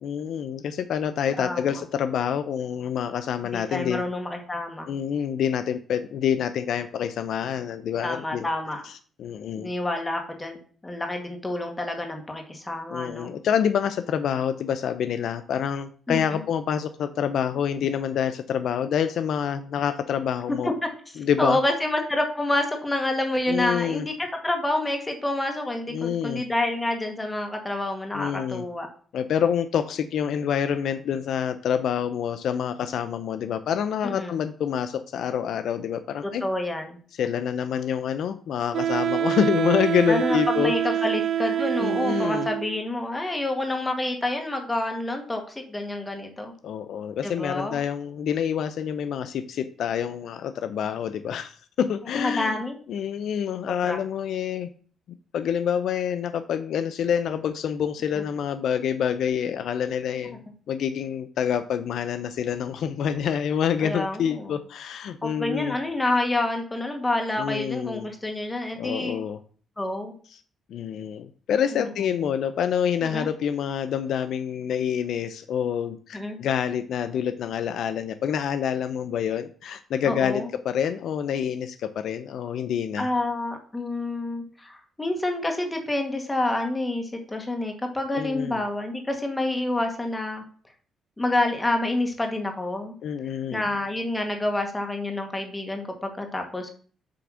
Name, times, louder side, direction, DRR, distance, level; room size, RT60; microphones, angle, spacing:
voice 1, 0.0-4.0 4.9-8.5 8.8-9.7 12.9-20.7 21.2-21.6 23.5-24.1 25.9-26.4 28.1-28.6 29.1-36.4 37.2-40.7 41.8-42.5 46.6-52.6 52.9-54.7 55.3-60.4 60.7-65.8 67.4-68.1 68.8-69.4 70.7-83.1 88.1-88.6 93.0-93.7, left 8 dB, 70° left, 10 dB, 0.5 m, -27 dB
voice 2, 1.4-1.8 3.5-4.9 8.0-8.9 9.5-10.6 10.8-13.3 16.1-16.4 20.6-20.7 21.4-28.9 34.0-34.4 36.2-37.0 40.1-46.5 47.2-47.8 52.2-52.8 53.7-54.0 63.8-64.5 65.2-69.2 69.8-70.1 71.7-72.1 73.0-73.3 76.1-76.4 80.1-80.5 83.0-90.4 91.2-93.0 93.5-96.7, left 2 dB, 15° left, 4 dB, 1.9 m, -28 dB
Wind instrument woodwind instrument, 38.7-42.8, right 10 dB, 65° right, 0.9 m, -26 dB
7.7 x 3.4 x 6.3 m, 0.44 s
cardioid pair, 90°, 0 cm